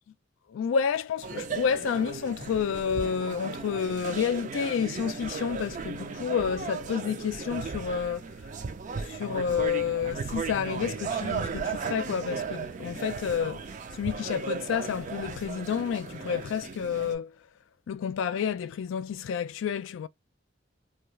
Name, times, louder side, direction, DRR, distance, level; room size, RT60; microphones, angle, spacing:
voice 1, 0.5-8.2 9.0-13.6 13.9-17.4 17.9-20.1, left 7 dB, 80° left, 0.3 m, -30 dB
sound 1, 1.2-17.1, right 5 dB, 40° right, 0.4 m, -36 dB
2.3 x 2.3 x 3.0 m
head